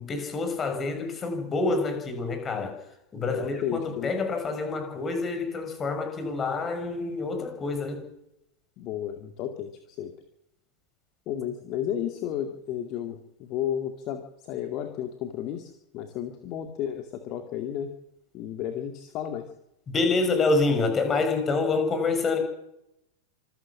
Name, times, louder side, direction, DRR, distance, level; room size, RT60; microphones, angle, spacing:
voice 1, 0.0-2.8 3.1-8.0 19.9-22.4, left 3 dB, 20° left, 6 dB, 6.1 m, -27 dB
voice 2, 3.3-4.1 8.8-10.1 11.3-17.9 18.3-19.5, left 10 dB, 40° left, 6 dB, 2.2 m, -33 dB
26.5 x 14.0 x 7.4 m, 0.82 s
figure-of-eight pair, 90°, 0 cm